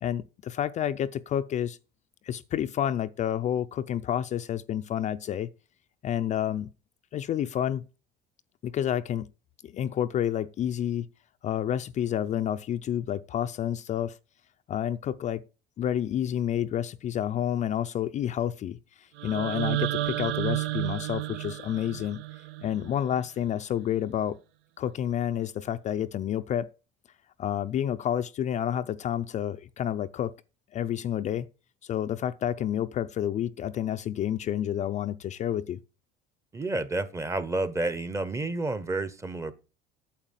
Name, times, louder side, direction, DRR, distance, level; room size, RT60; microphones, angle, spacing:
voice 1, 0.0-1.8 2.2-5.5 6.0-6.7 7.1-7.9 8.6-9.3 9.6-11.1 11.4-14.2 14.7-15.4 15.8-22.2 22.6-24.4 24.8-26.7 27.4-30.3 30.7-31.5 31.8-35.8, left 10 dB, 35° left, 0.5 m, -29 dB
sound 1, 19.2-23.2, right 16 dB, 70° right, 0.7 m, -32 dB
voice 2, 36.5-39.5, right 2 dB, 15° right, 0.9 m, -30 dB
9.0 x 7.4 x 7.3 m
cardioid pair, 140°, 20 cm